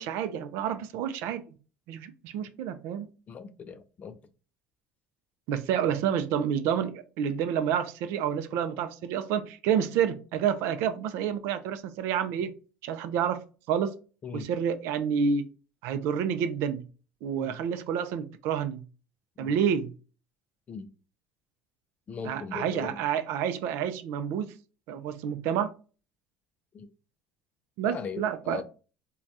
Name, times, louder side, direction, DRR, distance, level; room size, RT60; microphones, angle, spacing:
voice 1, 0.0-1.4 1.9-3.1 5.5-12.5 12.8-13.4 13.7-13.9 14.3-15.5 15.8-16.8 17.2-18.8 19.4-19.9 22.3-24.5 24.9-25.7 27.8-28.6, right 8 dB, 70° right, 0.4 m, -29 dB
voice 2, 3.3-4.2 14.2-14.5 17.4-17.6 19.4-19.6 20.7-20.9 22.1-23.0 26.7-26.9 27.8-28.6, left 6 dB, 35° left, 0.4 m, -39 dB
3.2 x 2.2 x 2.6 m
supercardioid pair, 100°, 5 cm